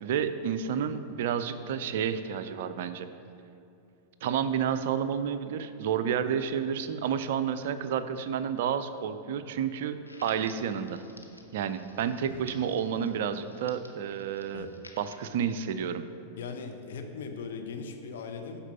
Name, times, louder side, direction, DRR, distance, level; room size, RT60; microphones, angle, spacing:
voice 1, 0.0-3.1 4.2-11.0 11.5-14.7 15.0-16.0, right 8 dB, 55° right, 11 dB, 0.4 m, -30 dB
Crackle, 10.1-15.2, left 1 dB, 90° left, 0.7 m, -52 dB
voice 2, 16.4-18.6, left 5 dB, 60° left, 4 dB, 0.8 m, -39 dB
11.0 x 4.3 x 5.5 m, 2.8 s
figure-of-eight pair, 90°, 0 cm